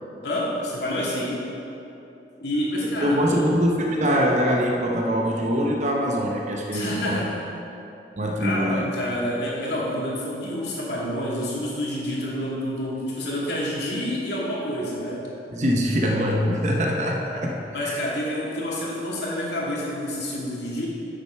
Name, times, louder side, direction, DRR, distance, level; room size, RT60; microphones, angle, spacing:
voice 1, 0.2-1.4 2.4-3.6 6.7-7.5 8.4-15.2 17.7-20.9, equal, 80° left, -5 dB, 2.1 m, -28 dB
voice 2, 3.0-7.2 8.2-8.9 15.5-18.0, equal, 40° right, 0 dB, 0.8 m, -23 dB
7.5 x 6.8 x 5.6 m, 2.8 s
head